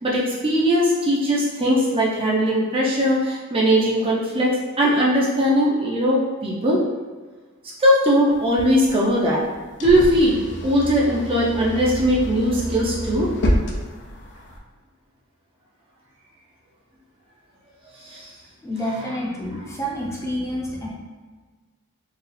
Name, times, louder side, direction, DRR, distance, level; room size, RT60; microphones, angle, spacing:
voice 1, 0.0-4.5 4.8-6.8 7.8-9.4 9.8-13.3 18.0-18.3, equal, 25° right, -4 dB, 0.5 m, -19 dB
sound 1, 8.3-14.6, equal, 55° left, 0.5 m, -29 dB
voice 2, 18.6-20.9, equal, 15° left, -4 dB, 0.6 m, -28 dB
4.6 x 2.3 x 3.2 m, 1.4 s
head